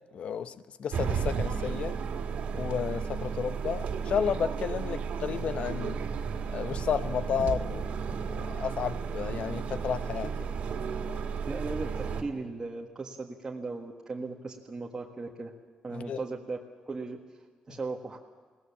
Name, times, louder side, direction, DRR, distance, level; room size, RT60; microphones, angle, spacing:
voice 1, 0.1-2.0 2.5-6.0 6.5-7.9 8.3-10.5 11.1-11.2 15.9-16.2 17.7-17.8, left 7 dB, 60° left, 0.9 m, -32 dB
sound 1, 0.9-12.2, right 6 dB, 70° right, 2.1 m, -33 dB
voice 2, 11.5-15.5 15.8-16.6 16.8-17.2 17.7-18.2, right 3 dB, 20° right, 1.6 m, -37 dB
22.0 x 18.5 x 7.4 m
cardioid pair, 130°, 2 cm